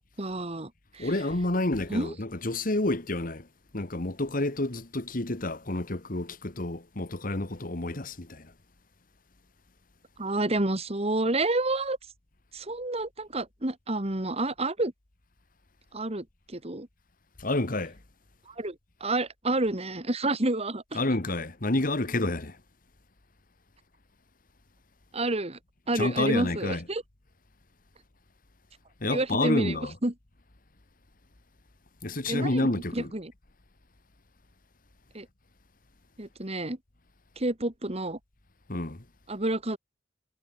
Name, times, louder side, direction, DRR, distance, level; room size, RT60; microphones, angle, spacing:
voice 1, 0.2-1.3 1.9-2.2 10.2-12.0 12.5-14.9 15.9-16.9 18.6-18.7 19.0-21.1 25.1-25.6 25.9-27.0 29.1-30.1 32.3-33.3 35.1-35.3 36.2-36.8 37.4-38.2 39.3-39.8, right 2 dB, 35° right, 2.5 m, -29 dB
voice 2, 1.0-3.5 3.7-8.5 17.4-18.0 21.0-22.6 25.9-26.8 29.0-29.9 32.0-33.1 38.7-39.0, left 2 dB, 50° left, 1.8 m, -29 dB
head